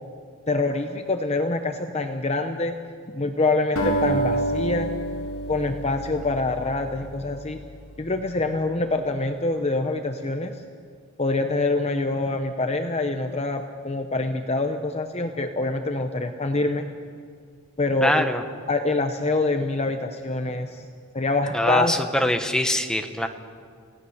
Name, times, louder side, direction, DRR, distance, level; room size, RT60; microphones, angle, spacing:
voice 1, 0.5-2.8 3.1-4.9 5.5-7.6 8.0-10.6 11.2-16.9 17.8-18.3 18.7-20.9 21.1-21.9, left 2 dB, 30° left, 6 dB, 0.8 m, -25 dB
Acoustic guitar, 3.8-8.2, right 1 dB, 70° left, 4.0 m, -29 dB
voice 2, 18.0-18.4 21.5-23.3, left 1 dB, 5° left, 5 dB, 1.1 m, -23 dB
29.5 x 17.5 x 6.6 m, 2.1 s
head